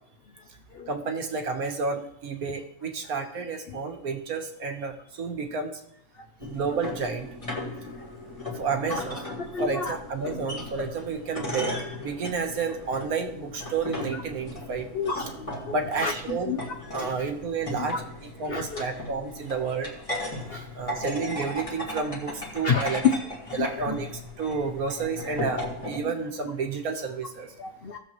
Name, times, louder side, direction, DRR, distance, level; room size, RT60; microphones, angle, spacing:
voice 1, 0.9-5.8 6.4-7.3 8.5-9.2 9.6-14.9 15.7-16.5 16.9-19.9 20.7-23.0 23.5-27.5, right 5 dB, 65° right, 5 dB, 1.5 m, -31 dB
sound 1, 6.4-26.0, left 1 dB, 20° left, 1.6 m, -37 dB
voice 2, 9.5-10.0 14.9-15.5 16.0-16.6 17.0-17.1 18.5-18.8 20.5-20.6 22.6-23.1 23.6-24.0 27.6-28.0, left 6 dB, 70° left, 6 dB, 0.5 m, -28 dB
16.5 x 7.0 x 3.0 m, 0.70 s
omnidirectional pair, 1.7 m